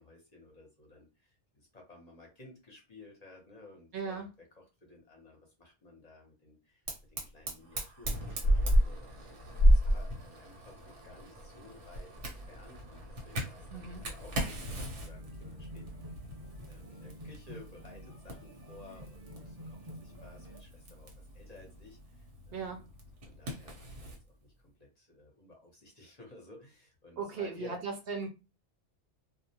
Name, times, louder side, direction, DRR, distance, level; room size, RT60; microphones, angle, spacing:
voice 1, 0.0-6.8 7.1-9.4 9.6-16.1 16.7-22.9 23.2-24.2 24.4-27.8, left 2 dB, 40° left, 0.7 m, -55 dB
voice 2, 3.9-4.3 13.7-14.0 22.5-22.9 27.2-28.3, right 5 dB, 65° right, 0.8 m, -37 dB
Fire, 6.9-24.2, equal, 90° right, 1.1 m, -33 dB
sound 1, 15.0-20.6, equal, 25° right, 0.7 m, -49 dB
2.4 x 2.0 x 2.7 m
omnidirectional pair, 1.2 m